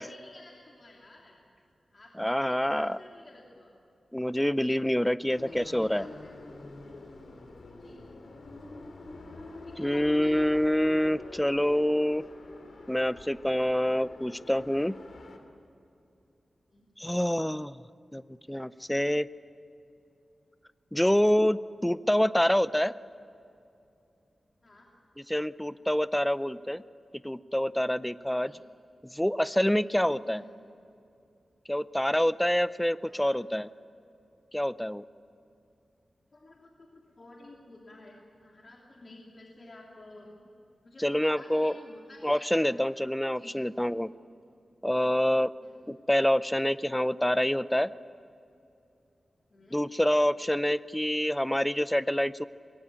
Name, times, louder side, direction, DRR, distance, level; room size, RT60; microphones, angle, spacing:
voice 1, 0.0-1.5 1.9-3.7 5.3-6.3 7.8-8.1 9.6-10.5 16.7-16.9 24.6-24.9 28.4-28.6 30.2-30.5 33.0-33.3 36.3-40.5 40.8-42.6 43.3-43.7 45.6-45.9 49.5-49.8, left 2 dB, 40° left, -2 dB, 3.0 m, -52 dB
voice 2, 2.2-3.0 4.1-6.1 9.8-12.2 12.9-15.0 17.0-17.8 18.1-18.2 18.5-19.3 20.9-22.9 25.3-26.8 27.2-28.5 29.0-30.4 31.7-33.7 34.5-35.0 41.0-41.7 42.2-44.1 44.8-45.5 45.9-47.9 49.7-52.5, equal, 5° left, 15 dB, 0.5 m, -26 dB
sound 1, 5.3-15.4, left 2 dB, 75° left, 3.1 m, -46 dB
24.5 x 21.0 x 8.7 m, 2.7 s
wide cardioid pair, 130°, 0 cm